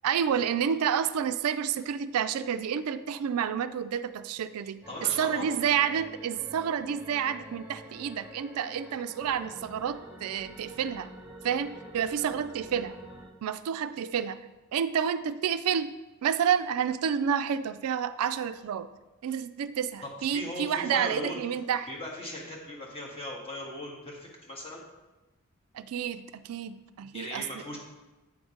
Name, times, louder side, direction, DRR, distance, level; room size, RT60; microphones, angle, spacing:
voice 1, 0.0-4.8 5.2-11.1 11.4-13.0 13.4-14.4 14.7-15.9 16.2-18.9 19.2-21.9 25.7-27.5, right 8 dB, 75° right, 12 dB, 0.3 m, -29 dB
sound 1, 4.8-13.3, right 1 dB, 10° right, 1.3 m, -47 dB
voice 2, 4.9-5.7 20.0-21.4 21.9-24.8 27.1-27.8, left 1 dB, 25° left, -3 dB, 1.6 m, -38 dB
8.6 x 3.8 x 5.0 m, 1.1 s
head